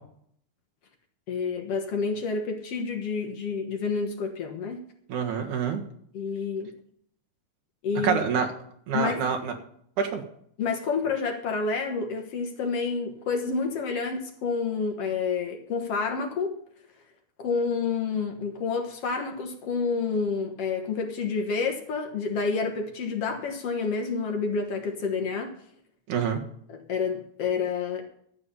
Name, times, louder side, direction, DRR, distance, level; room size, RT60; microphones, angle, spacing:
voice 1, 1.3-4.8 6.1-6.7 7.8-8.2 8.9-9.2 10.6-16.5 17.4-25.5 26.7-28.0, left 5 dB, 60° left, 3 dB, 2.2 m, -29 dB
voice 2, 5.1-5.8 8.0-8.5 8.9-9.5 10.0-10.2 26.1-26.4, right 7 dB, 80° right, 2 dB, 3.0 m, -26 dB
12.5 x 8.9 x 5.5 m, 0.66 s
omnidirectional pair, 3.5 m